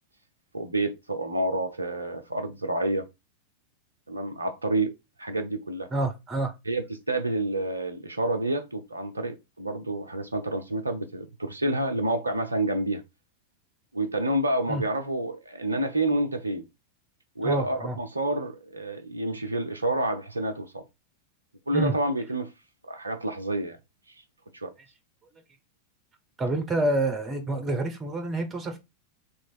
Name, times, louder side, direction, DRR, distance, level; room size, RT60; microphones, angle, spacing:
voice 1, 0.5-3.1 4.1-4.9 5.2-5.9 6.7-13.0 13.9-16.6 17.4-20.8 21.7-22.5 22.8-23.8 24.5-24.7, right 1 dB, 80° right, 0.7 m, -28 dB
voice 2, 5.9-6.5 14.7-14.8 17.4-18.0 21.7-21.9 26.4-28.8, right 2 dB, 20° right, 1.1 m, -27 dB
3.2 x 3.1 x 4.4 m
figure-of-eight pair, 90°, 0 cm